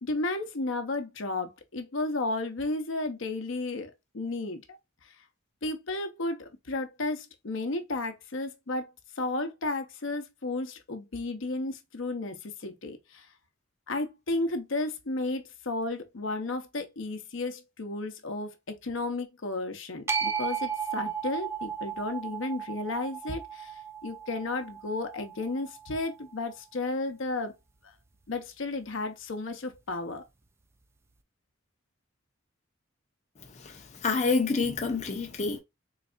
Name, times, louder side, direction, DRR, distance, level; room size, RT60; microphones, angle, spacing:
voice 1, 0.0-4.8 5.0-5.1 5.6-8.9 9.2-13.3 13.9-27.5 28.3-30.2, left 2 dB, 65° left, 0.8 m, -33 dB
sound 1, 20.1-26.3, right 7 dB, 15° right, 0.3 m, -35 dB
voice 2, 33.6-35.6, left 4 dB, 35° left, 0.7 m, -28 dB
4.0 x 3.2 x 2.4 m
head